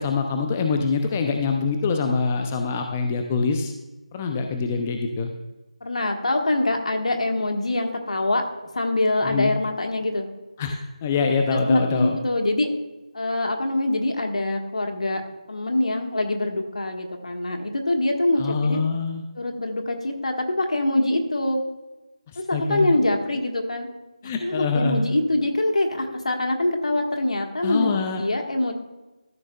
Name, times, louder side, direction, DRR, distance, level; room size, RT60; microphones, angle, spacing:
voice 1, 0.0-3.7 4.1-5.3 9.2-9.5 10.6-12.2 18.4-19.2 22.3-22.9 24.2-25.0 27.6-28.2, left 4 dB, 15° left, 4 dB, 0.4 m, -24 dB
voice 2, 5.8-8.4 8.7-10.3 11.5-12.7 13.1-15.2 15.5-18.8 19.3-21.6 22.4-23.9 24.2-28.7, left 1 dB, 75° left, 3 dB, 1.4 m, -24 dB
13.5 x 6.3 x 2.3 m, 1.1 s
figure-of-eight pair, 165°, 4 cm